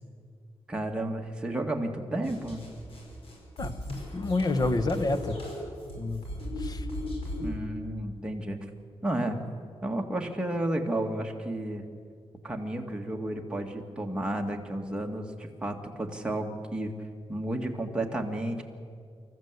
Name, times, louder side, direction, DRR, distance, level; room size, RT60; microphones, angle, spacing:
voice 1, 0.7-2.7 7.4-8.6 9.0-9.4 9.8-11.8 12.4-16.9 17.3-18.6, right 1 dB, 10° right, 1 dB, 1.9 m, -32 dB
sound 1, 2.2-7.6, left 1 dB, 65° left, 6.1 m, -37 dB
voice 2, 3.6-5.4 5.9-6.2 6.6-6.9, left 2 dB, 40° left, 10 dB, 1.2 m, -29 dB
27.0 x 14.0 x 8.2 m, 2.2 s
wide cardioid pair, 170°, 10 cm